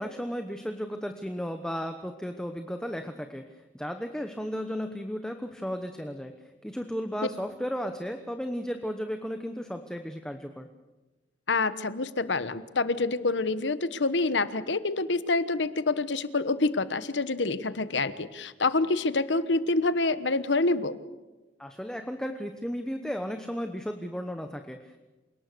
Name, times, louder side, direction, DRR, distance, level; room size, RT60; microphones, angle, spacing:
voice 1, 0.0-3.4 3.7-6.3 6.6-10.7 21.6-25.0, equal, 5° left, 6 dB, 1.0 m, -34 dB
voice 2, 11.5-21.0, left 3 dB, 75° left, 14 dB, 1.2 m, -27 dB
28.0 x 18.5 x 6.8 m, 1.1 s
head